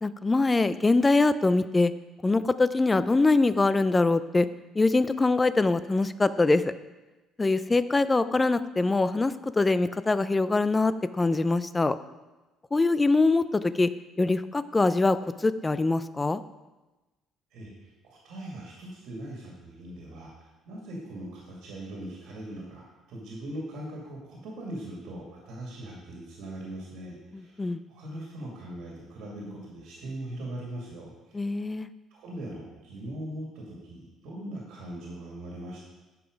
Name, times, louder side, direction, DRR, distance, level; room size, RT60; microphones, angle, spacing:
voice 1, 0.0-1.9 2.2-4.5 4.8-6.7 7.4-12.0 12.7-13.9 14.2-16.4 27.3-27.8 31.3-31.9, left 3 dB, 15° left, 14 dB, 0.3 m, -23 dB
voice 2, 17.5-31.1 32.1-35.8, right 1 dB, 65° right, -2 dB, 2.2 m, -40 dB
10.0 x 5.9 x 5.1 m, 1.1 s
cardioid pair, 160°, 0 cm